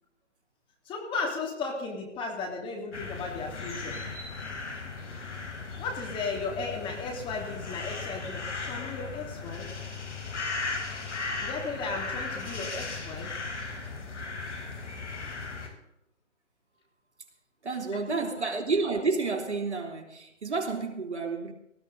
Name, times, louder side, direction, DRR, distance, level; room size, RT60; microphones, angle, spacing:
voice 1, 0.9-4.0 5.8-9.8 11.4-13.4 17.9-18.5, left 4 dB, 15° left, 2.6 m, -35 dB
sound 1, 2.9-15.7, left 4 dB, 70° left, 4.5 m, -37 dB
voice 2, 17.6-21.5, right 4 dB, 65° right, 3.2 m, -30 dB
19.5 x 13.5 x 4.0 m
figure-of-eight pair, 145°, 36 cm